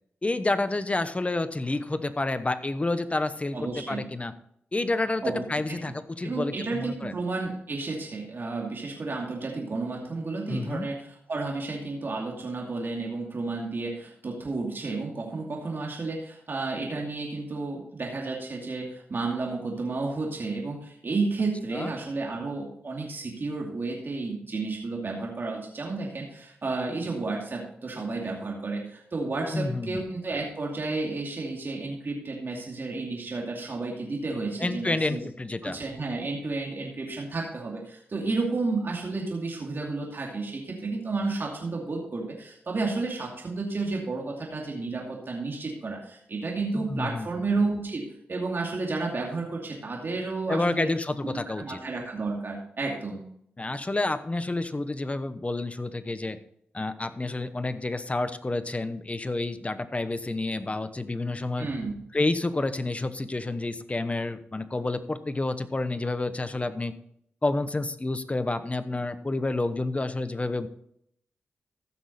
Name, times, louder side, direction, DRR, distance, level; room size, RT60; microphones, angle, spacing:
voice 1, 0.2-4.3 4.7-7.1 10.5-10.9 21.7-21.9 29.5-30.0 34.6-35.8 46.8-47.5 50.5-51.8 53.6-56.4 56.7-61.7 62.1-67.0 67.4-70.7, left 2 dB, 30° left, 13 dB, 0.9 m, -29 dB
voice 2, 3.5-4.0 5.2-5.8 6.2-35.2 35.6-50.9 51.3-53.2 61.6-61.9, right 3 dB, 55° right, -1 dB, 2.5 m, -32 dB
15.0 x 6.2 x 4.2 m, 0.70 s
supercardioid pair, 40°, 4 cm